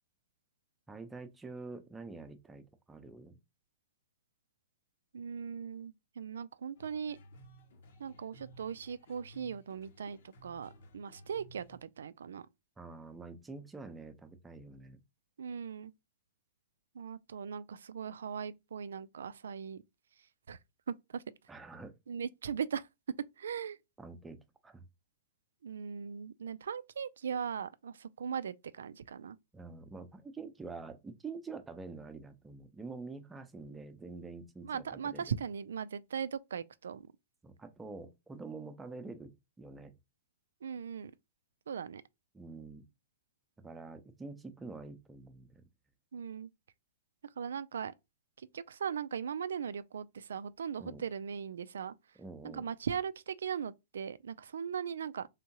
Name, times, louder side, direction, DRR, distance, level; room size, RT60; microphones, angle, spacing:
voice 1, 0.9-3.4 12.8-15.0 21.5-22.0 24.0-24.9 29.5-35.3 37.4-39.9 42.3-42.9 43.6-45.6 50.8-51.0 52.2-52.6, right 3 dB, 10° right, 0.7 m, -46 dB
voice 2, 5.1-7.2 8.0-12.5 15.4-15.9 16.9-19.8 20.5-20.6 20.9-21.2 22.1-22.9 23.4-23.8 25.6-29.4 34.6-37.1 40.6-41.1 41.7-42.0 46.1-46.5 47.4-47.9 48.4-51.9 52.4-55.3, right 7 dB, 65° right, 0.3 m, -39 dB
sound 1, 6.8-11.8, equal, 60° left, 1.0 m, -56 dB
3.6 x 3.5 x 2.8 m
figure-of-eight pair, 110°, 0 cm